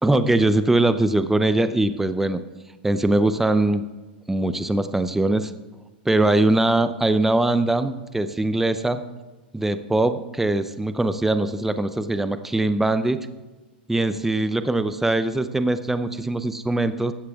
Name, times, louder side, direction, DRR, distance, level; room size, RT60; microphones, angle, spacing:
voice 1, 0.0-2.4 2.8-3.8 4.3-5.5 6.1-9.0 9.5-13.2 13.9-17.1, right 2 dB, 5° right, 10 dB, 0.5 m, -21 dB
16.0 x 13.0 x 2.4 m, 1.2 s
hypercardioid pair, 105°, 6 cm